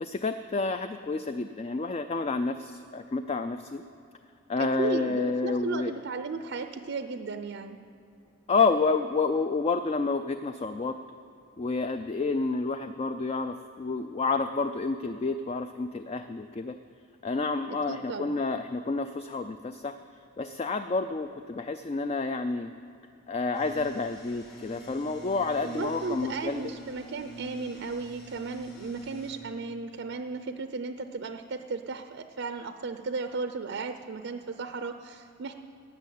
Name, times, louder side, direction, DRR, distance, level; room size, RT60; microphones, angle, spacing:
voice 1, 0.0-3.8 4.5-5.9 8.5-11.0 11.6-16.8 17.2-20.0 20.4-22.7 23.3-26.7, left 4 dB, 30° left, 9 dB, 0.3 m, -29 dB
voice 2, 4.6-7.8 17.6-18.4 25.6-35.5, right 4 dB, 55° right, 8 dB, 0.5 m, -35 dB
sound 1, 23.5-29.4, right 1 dB, 50° left, 2.3 m, -46 dB
13.0 x 8.3 x 8.4 m, 2.6 s
head